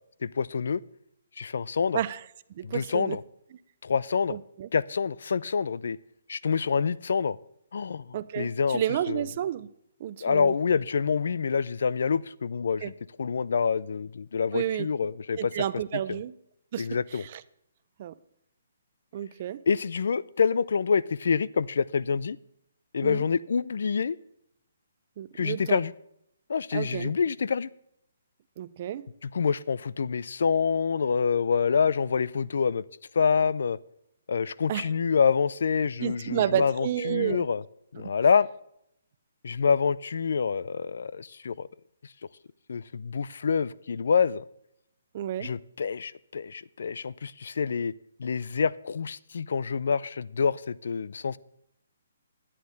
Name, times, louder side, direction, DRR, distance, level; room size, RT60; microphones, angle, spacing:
voice 1, 0.2-0.8 1.4-2.0 2.6-3.2 3.8-4.4 4.7-6.0 6.3-7.4 7.7-8.8 9.1-9.2 10.2-12.9 13.2-15.5 16.1-16.2 16.8-17.2 19.7-22.4 22.9-24.2 25.4-25.9 26.5-27.7 29.2-32.8 33.1-33.8 34.3-37.6 37.9-38.5 39.4-41.7 42.7-44.4 45.4-47.9 48.2-51.4, left 6 dB, 70° left, 0.4 m, -26 dB
voice 2, 2.5-3.2 4.3-4.7 8.1-9.7 10.0-10.5 12.8-12.9 14.5-14.9 15.4-16.3 16.7-16.9 17.1-17.4 18.0-18.2 19.1-19.6 23.0-23.2 25.2-25.8 26.7-27.1 28.6-29.1 34.7-34.9 36.0-37.4 45.1-45.5, right 11 dB, 40° right, 0.5 m, -31 dB
10.5 x 9.9 x 4.0 m
hypercardioid pair, 150°, 0 cm